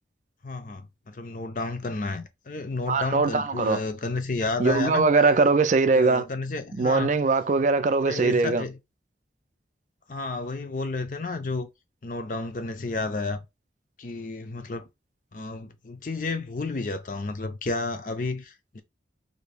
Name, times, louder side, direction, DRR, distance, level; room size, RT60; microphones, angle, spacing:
voice 1, 0.4-5.1 5.9-7.2 8.0-8.8 10.1-11.7 12.0-13.4 14.0-14.9 15.3-18.8, left 3 dB, 45° left, 0.5 m, -31 dB
voice 2, 2.9-3.8 4.6-6.2 6.8-8.6, right 4 dB, 40° right, 0.4 m, -21 dB
2.9 x 2.7 x 3.3 m
head